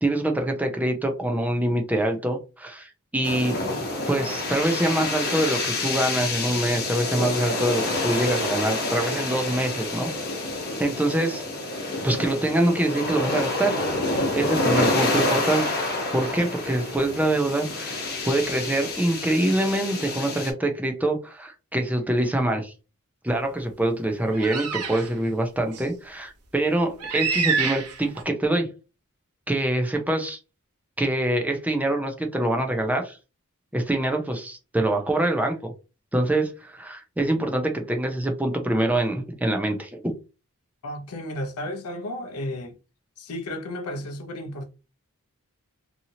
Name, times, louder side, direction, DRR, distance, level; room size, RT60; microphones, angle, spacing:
voice 1, 0.0-3.6 4.1-10.1 10.8-11.4 12.0-13.8 14.3-15.8 16.1-18.0 18.3-22.7 23.2-28.7 29.5-30.4 31.0-33.2 33.7-35.7 36.1-39.9, right 1 dB, 5° right, 0.5 m, -25 dB
sound 1, 3.2-20.5, left 2 dB, 45° left, 1.0 m, -28 dB
sound 2, 24.3-25.1 25.7-25.8 27.0-28.2, right 5 dB, 90° right, 0.7 m, -27 dB
voice 2, 40.8-42.7 43.2-44.7, left 1 dB, 75° left, 0.6 m, -33 dB
2.8 x 2.7 x 2.7 m
head